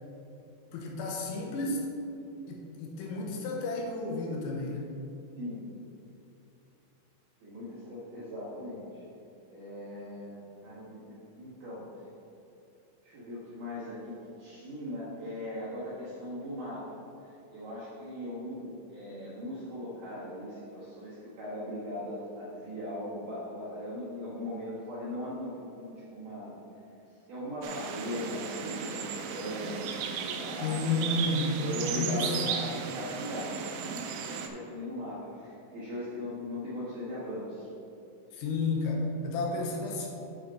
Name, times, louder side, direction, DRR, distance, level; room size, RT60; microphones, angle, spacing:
voice 1, 0.7-1.9 2.5-4.9 30.6-31.6 31.9-32.5 38.3-40.1, left 3 dB, 80° left, -1 dB, 3.6 m, -32 dB
voice 2, 7.4-9.0 9.5-11.8 13.0-26.5 27.3-31.0 31.6-37.7, left 1 dB, 65° right, -11 dB, 2.1 m, -39 dB
sound 1, 27.6-34.5, right 7 dB, 85° right, 2.7 m, -35 dB
8.3 x 5.0 x 5.2 m, 2.7 s
omnidirectional pair, 5.9 m